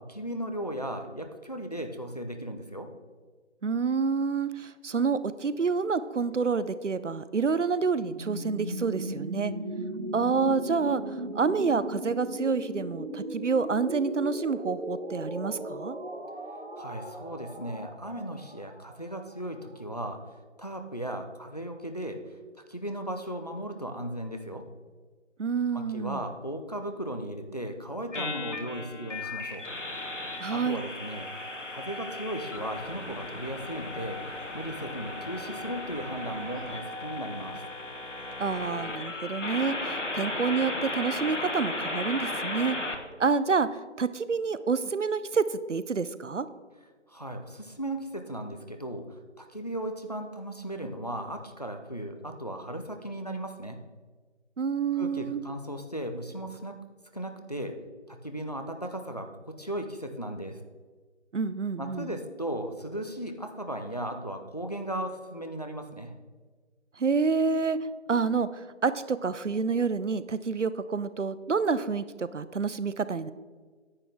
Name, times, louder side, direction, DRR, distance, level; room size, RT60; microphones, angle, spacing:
voice 1, 0.0-2.9 16.8-20.2 20.6-22.2 22.7-24.6 25.7-29.6 30.5-31.3 31.7-34.2 34.5-37.6 47.1-53.8 54.9-56.7 57.1-57.8 58.1-59.3 59.6-60.6 61.8-66.1, right 1 dB, 35° left, 6 dB, 0.6 m, -36 dB
voice 2, 3.6-9.5 10.1-16.0 25.4-26.2 30.4-30.8 38.4-42.8 43.2-46.5 54.6-55.4 61.3-62.1 67.0-67.8 68.1-73.3, right 5 dB, 80° right, 15 dB, 0.6 m, -28 dB
sound 1, 8.0-19.8, right 1 dB, 60° right, 1.3 m, -37 dB
sound 2, 28.1-43.0, left 2 dB, 80° left, 1.4 m, -36 dB
sound 3, 29.1-39.0, left 1 dB, 60° left, 1.4 m, -44 dB
9.8 x 8.3 x 3.5 m, 1.4 s
figure-of-eight pair, 165°, 36 cm